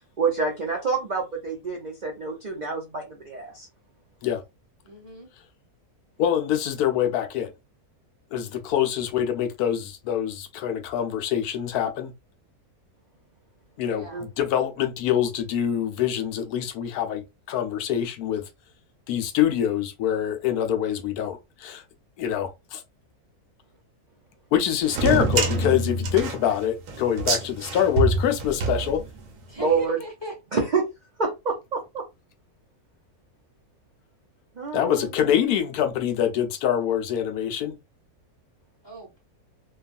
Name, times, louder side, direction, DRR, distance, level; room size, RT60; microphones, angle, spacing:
voice 1, 0.2-3.7 14.1-14.3 29.6-30.0 30.5-30.9 31.2-32.0 34.6-35.1, right 4 dB, 55° right, 0.4 m, -27 dB
voice 2, 4.8-5.3 13.8-14.2 29.5-30.4 38.8-39.2, right 1 dB, 20° left, 1.2 m, -39 dB
voice 3, 6.2-7.5 8.3-12.1 13.8-14.0 14.4-18.4 19.1-21.8 22.2-22.8 24.5-29.0 34.7-37.7, left 10 dB, 80° left, 1.1 m, -25 dB
sound 1, 24.9-29.4, right 3 dB, 80° right, 1.2 m, -26 dB
3.0 x 2.3 x 2.4 m
omnidirectional pair, 1.6 m